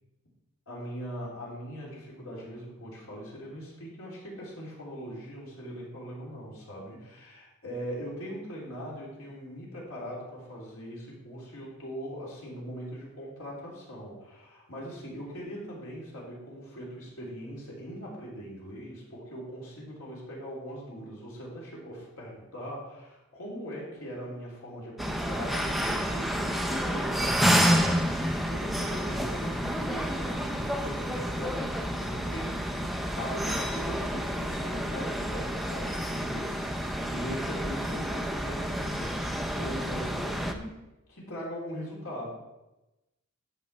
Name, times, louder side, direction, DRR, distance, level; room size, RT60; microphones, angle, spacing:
voice 1, 0.7-40.8 41.1-42.3, equal, 75° left, -4 dB, 3.4 m, -40 dB
sound 1, 25.0-40.5, equal, ahead, 0.6 m, -29 dB
10.0 x 7.2 x 4.3 m, 1.0 s
head